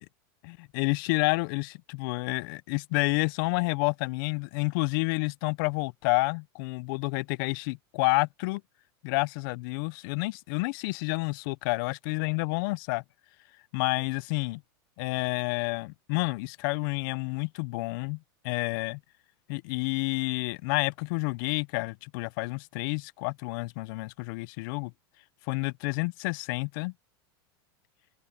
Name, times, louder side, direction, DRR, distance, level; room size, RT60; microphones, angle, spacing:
voice 1, 0.4-8.6 9.0-13.0 13.7-14.6 15.0-18.2 18.4-19.0 19.5-24.9 25.5-26.9, left 27 dB, 60° left, 0.5 m, -29 dB
open air
supercardioid pair, 135°, 13 cm